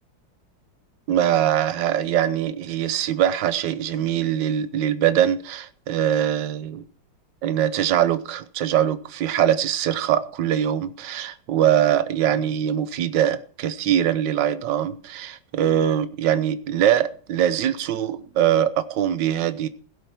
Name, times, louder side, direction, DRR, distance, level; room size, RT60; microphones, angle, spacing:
voice 1, 1.1-6.8 7.4-19.7, right 10 dB, 80° right, 1.5 m, -22 dB
17.0 x 8.0 x 5.7 m
omnidirectional pair, 1.9 m